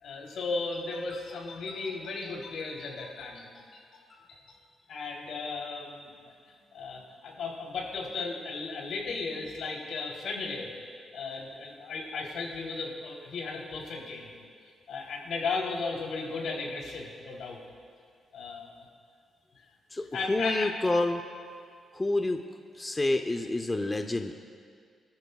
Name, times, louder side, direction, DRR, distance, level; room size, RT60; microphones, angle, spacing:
voice 1, 0.0-3.8 4.3-4.4 4.9-6.1 6.7-10.7 11.1-14.3 14.9-17.6 18.3-18.8 20.1-20.7, left 4 dB, 80° left, -2 dB, 3.3 m, -35 dB
voice 2, 19.9-21.2 21.9-22.4 22.7-24.3, left 2 dB, 15° left, 5 dB, 0.6 m, -28 dB
29.5 x 13.5 x 2.3 m, 2.2 s
cardioid pair, 120°, 0 cm